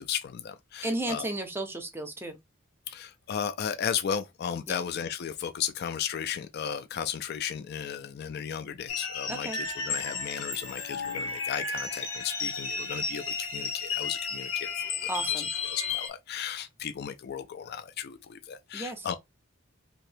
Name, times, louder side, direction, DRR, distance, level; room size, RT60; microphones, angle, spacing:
voice 1, 0.0-1.3 2.9-15.4 15.7-19.1, left 8 dB, 55° left, 0.3 m, -35 dB
voice 2, 0.8-2.4 4.7-4.8 9.3-9.6 15.1-15.5 18.7-19.1, right 1 dB, 10° right, 0.6 m, -33 dB
sound 1, 8.9-16.1, left 5 dB, 90° left, 0.9 m, -33 dB
2.8 x 2.7 x 3.2 m
head